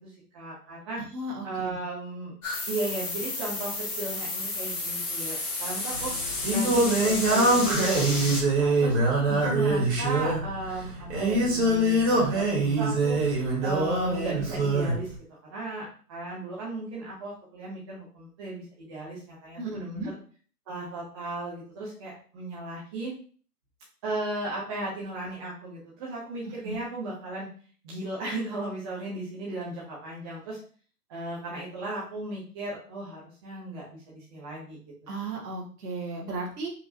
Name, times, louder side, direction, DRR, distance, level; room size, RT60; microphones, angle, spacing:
voice 1, 0.0-1.0 1.4-2.3 2.7-6.1 6.5-9.0 9.4-13.2 13.6-15.1 15.5-20.2 20.7-23.1 24.0-27.5 27.8-30.6 31.1-34.8, right 2 dB, 15° right, -6 dB, 0.6 m, -36 dB
voice 2, 1.1-1.8 9.3-9.7 19.6-20.1 26.6-26.8 35.1-36.7, right 2 dB, 70° right, -1 dB, 1.6 m, -35 dB
sound 1, 2.4-8.4, left 2 dB, 20° left, 0.9 m, -32 dB
Singing, 5.9-15.0, right 2 dB, 45° right, 1.9 m, -24 dB
4.7 x 3.0 x 2.7 m, 0.42 s
hypercardioid pair, 150°, 47 cm